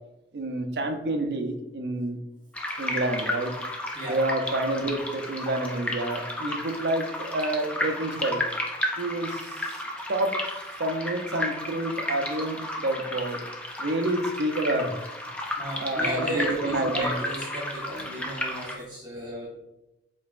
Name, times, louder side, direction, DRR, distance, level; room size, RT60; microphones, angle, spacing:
voice 1, 0.3-2.2 2.8-3.5 4.1-8.4 9.0-9.8 10.1-13.4 13.8-15.0 15.8-17.1, right 1 dB, 70° right, 6 dB, 0.5 m, -29 dB
sound 1, 2.5-18.7, left 1 dB, 5° left, 0.4 m, -33 dB
voice 2, 15.6-19.5, equal, 25° right, -7 dB, 1.0 m, -34 dB
5.3 x 3.8 x 2.4 m, 0.95 s
head